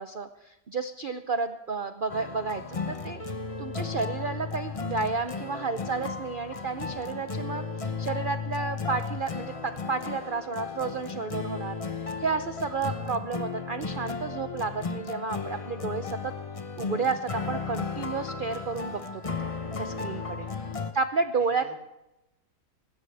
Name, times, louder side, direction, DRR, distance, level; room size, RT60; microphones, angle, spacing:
voice 1, 0.0-3.2 3.6-11.8 12.2-16.3 16.8-19.2 19.8-20.5 20.9-21.7, right 4 dB, 90° right, 9 dB, 0.4 m, -31 dB
sound 1, 2.1-20.9, left 5 dB, 35° left, 0.6 m, -35 dB
voice 2, 12.7-13.1 20.1-20.9 21.3-21.7, left 2 dB, 15° left, 1 dB, 3.5 m, -53 dB
19.5 x 16.0 x 3.4 m, 0.95 s
omnidirectional pair, 1.8 m